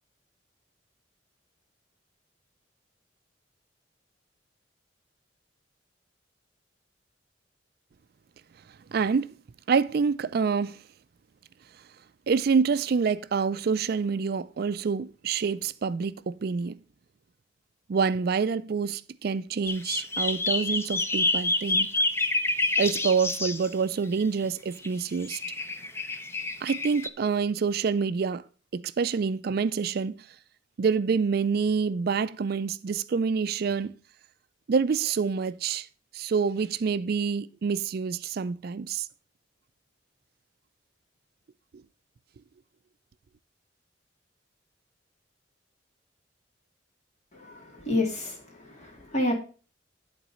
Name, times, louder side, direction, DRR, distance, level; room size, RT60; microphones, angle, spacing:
voice 1, 8.9-9.3 9.7-10.8 12.3-16.8 17.9-21.9 22.8-25.4 26.6-28.4 28.7-30.1 30.8-33.9 34.7-35.9 36.1-39.1, right 5 dB, 55° right, 0.4 m, -27 dB
sound 1, 19.7-23.7 24.8-24.9 25.2-27.1, left 2 dB, 15° left, 0.6 m, -28 dB
voice 2, 47.3-49.3, left 1 dB, 40° left, 2.8 m, -29 dB
11.0 x 4.1 x 6.2 m
head